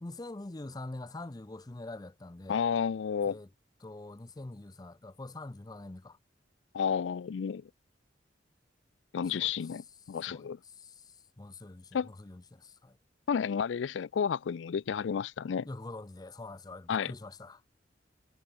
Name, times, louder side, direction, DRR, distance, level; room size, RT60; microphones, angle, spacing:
voice 1, 0.0-2.6 3.3-3.5 3.8-6.2 9.2-9.7 10.3-13.0 15.6-17.6, left 2 dB, 20° left, 0.5 m, -45 dB
voice 2, 2.5-3.4 6.7-7.7 9.1-10.6 11.9-12.1 13.3-15.7 16.9-17.1, left 7 dB, 85° left, 0.4 m, -31 dB
head